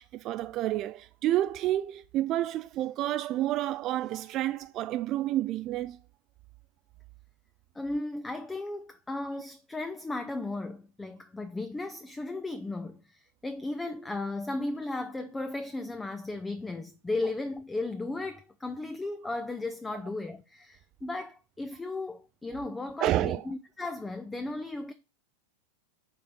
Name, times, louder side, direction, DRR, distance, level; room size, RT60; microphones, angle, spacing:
voice 1, 0.0-6.0 23.0-23.5, right 14 dB, 35° right, 0.3 m, -29 dB
voice 2, 7.7-24.9, left 2 dB, 10° left, 0.6 m, -35 dB
7.6 x 4.7 x 5.4 m
figure-of-eight pair, 90°, 0 cm